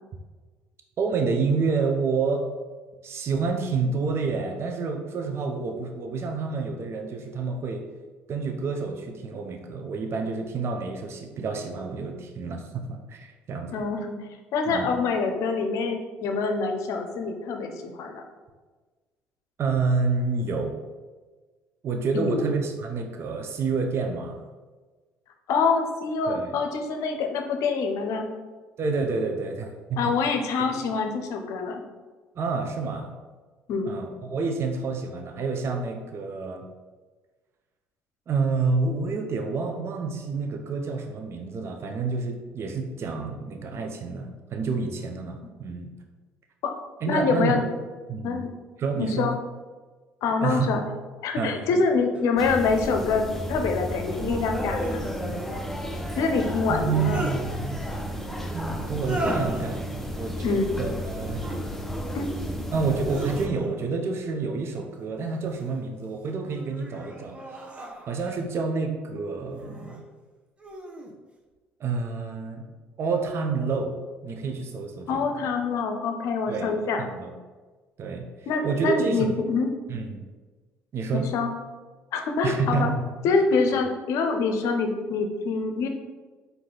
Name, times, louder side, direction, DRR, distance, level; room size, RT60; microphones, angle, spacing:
voice 1, 1.0-2.4 3.0-7.8 8.3-13.8 14.7-14.9 19.6-20.7 21.8-24.4 26.3-26.6 28.8-30.1 30.6-30.7 32.4-33.1 33.9-36.7 38.3-45.9 47.0-47.6 48.1-48.4 48.8-49.3 50.4-50.7 51.4-51.8 56.7-57.8 58.5-61.5 62.7-67.4 68.1-70.0 71.8-72.6 73.0-74.0 74.2-75.5 76.5-76.7 77.0-77.3 78.0-78.3 78.6-79.3 79.9-80.2 80.9-81.3 82.4-83.0 83.3-83.4, right 4 dB, 50° right, 4 dB, 0.5 m, -28 dB
voice 2, 13.7-14.1 14.5-18.2 22.1-22.5 25.5-28.3 30.0-31.8 33.7-33.9 46.6-46.7 47.1-47.7 48.2-48.5 49.0-49.4 50.2-50.8 51.2-55.0 56.2-57.3 60.4-60.7 62.1-62.3 75.1-77.1 78.5-79.7 81.1-81.5 82.1-82.9 83.2-85.9, left 4 dB, 65° left, 5 dB, 0.6 m, -25 dB
sound 1, 52.1-52.2 54.5-55.1 56.7-57.4 58.9-59.7 61.1-61.6 62.1-62.6 63.0-63.9 65.2-65.8 66.4-68.4 69.5-70.0 70.6-71.1, right 1 dB, 20° right, 0.9 m, -37 dB
sound 2, 52.4-63.5, equal, 5° left, 0.5 m, -32 dB
4.5 x 2.6 x 3.8 m, 1.3 s
hypercardioid pair, 60°, 6 cm